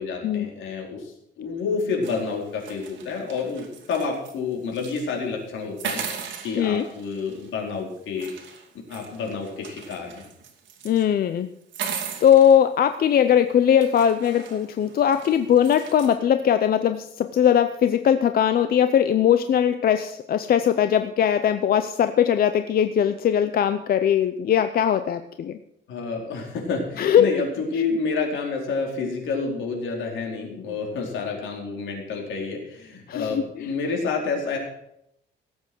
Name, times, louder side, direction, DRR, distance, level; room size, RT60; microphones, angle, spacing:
voice 1, 0.0-6.1 6.4-8.3 8.7-10.2 25.9-34.6, left 4 dB, 75° left, 0 dB, 4.5 m, -29 dB
sound 1, 2.0-4.3 4.7-5.0 5.8-7.5 8.2-11.0 11.6-12.6 13.3-13.4 13.8-16.2, right 7 dB, 70° right, 2.6 m, -37 dB
voice 2, 10.8-11.5 12.2-25.6 27.0-27.3 33.1-33.4, left 9 dB, 50° left, 10 dB, 0.6 m, -20 dB
17.5 x 8.2 x 6.2 m, 0.78 s
cardioid pair, 155°, 20 cm